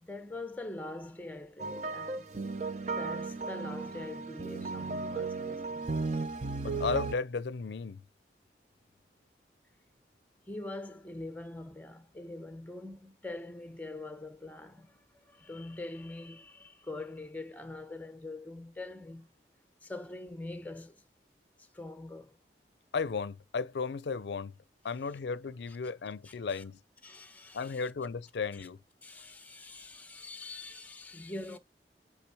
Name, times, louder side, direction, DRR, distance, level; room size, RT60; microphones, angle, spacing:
voice 1, 0.0-2.3 3.0-5.9 10.5-19.3 19.8-21.0 21.6-22.4 26.2-26.6 27.0-27.8 28.6-28.7 29.0-31.6, left 2 dB, 10° left, 0.8 m, -44 dB
sound 1, 1.6-7.2, right 3 dB, 40° right, 0.6 m, -35 dB
voice 2, 6.6-8.0 22.9-24.5 24.8-26.8 27.5-28.8, left 5 dB, 75° left, 0.5 m, -34 dB
8.2 x 3.6 x 4.7 m
head